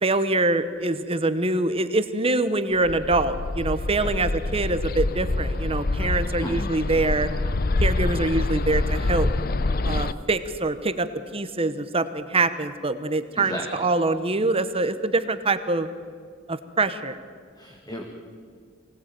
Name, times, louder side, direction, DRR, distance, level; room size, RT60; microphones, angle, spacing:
voice 1, 0.0-7.3 7.8-9.3 9.8-11.1 11.3-15.9 16.5-17.2, right 2 dB, 30° right, 11 dB, 0.9 m, -24 dB
Bird, 2.8-10.1, left 2 dB, 50° left, 0.8 m, -26 dB
voice 2, 13.3-13.8 17.6-18.0, equal, 20° left, 1 dB, 2.1 m, -34 dB
24.5 x 18.0 x 9.0 m, 2.1 s
head